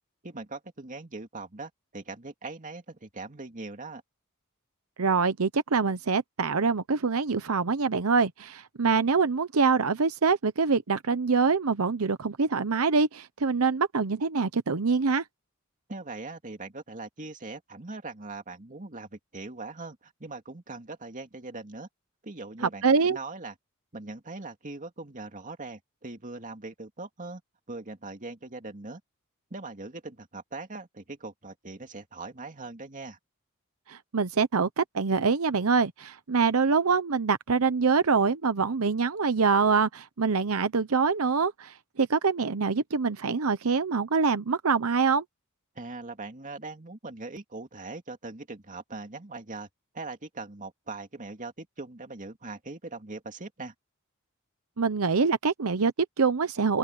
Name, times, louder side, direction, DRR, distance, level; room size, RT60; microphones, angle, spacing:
voice 1, 0.2-4.0 15.9-21.9 22.2-23.5 23.9-27.4 27.7-29.0 29.5-33.2 45.8-49.7 49.9-53.7, right 3 dB, 40° right, 2.5 m, -41 dB
voice 2, 5.0-15.2 22.8-23.2 33.9-45.2 54.8-56.8, right 5 dB, 85° right, 0.8 m, -25 dB
open air
head